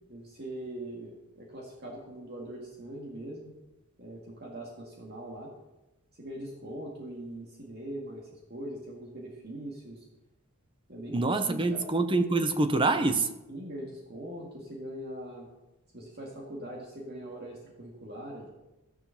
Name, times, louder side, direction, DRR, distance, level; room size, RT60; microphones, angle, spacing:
voice 1, 0.1-3.6 4.0-5.5 6.2-10.1 10.9-11.9 13.5-15.5 15.9-18.5, right 1 dB, 50° right, 2.0 m, -41 dB
voice 2, 11.1-13.3, right 3 dB, 25° right, 0.8 m, -26 dB
14.0 x 7.0 x 5.8 m
head